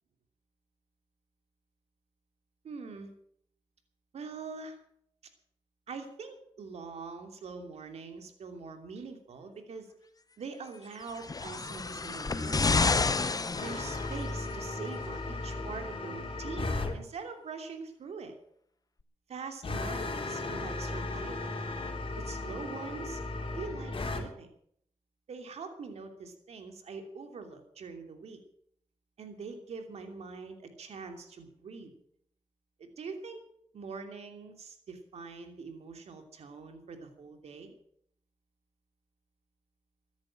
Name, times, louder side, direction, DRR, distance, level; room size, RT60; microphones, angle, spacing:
voice 1, 2.6-3.1 4.1-4.8 5.9-9.9 10.4-13.0 13.6-18.3 19.3-21.6 22.2-23.2 23.5-24.5 25.3-28.4 29.2-31.9 32.8-33.4 33.7-37.8, right 4 dB, 75° right, 6 dB, 2.9 m, -43 dB
sound 1, 11.1-14.5 15.4-15.5, left 4 dB, 35° left, 1.0 m, -29 dB
sound 2, 13.5-16.9 19.6-24.2, left 2 dB, 55° left, 3.2 m, -36 dB
14.0 x 10.5 x 7.6 m, 0.67 s
cardioid pair, 55°, 11 cm